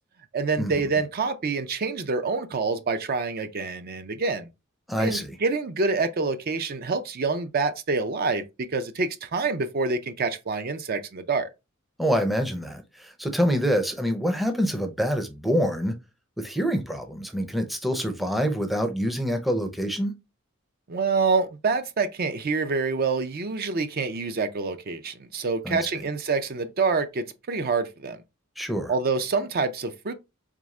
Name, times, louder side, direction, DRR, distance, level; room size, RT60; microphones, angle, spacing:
voice 1, 0.3-4.5 5.0-11.5 20.9-28.2 28.9-30.1, right 4 dB, 45° right, 0.5 m, -27 dB
voice 2, 4.9-5.4 12.0-15.9 16.4-20.1 25.6-25.8 28.6-28.9, equal, ahead, 0.5 m, -26 dB
3.7 x 3.5 x 3.1 m
head